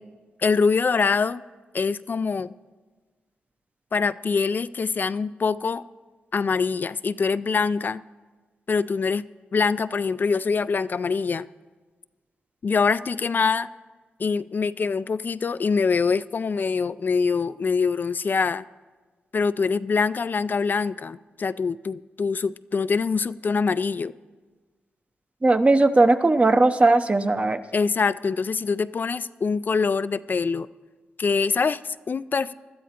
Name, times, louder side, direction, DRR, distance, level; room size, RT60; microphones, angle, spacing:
voice 1, 0.4-1.4 1.7-2.5 3.9-5.8 6.3-8.0 8.7-9.2 9.5-11.5 12.6-13.7 14.2-18.6 19.3-24.1 27.7-30.7 31.2-32.5, left 5 dB, 45° left, 15 dB, 0.3 m, -24 dB
voice 2, 25.4-27.6, right 2 dB, 30° right, 9 dB, 0.7 m, -18 dB
20.5 x 12.5 x 2.9 m, 1.4 s
cardioid pair, 55°, 4 cm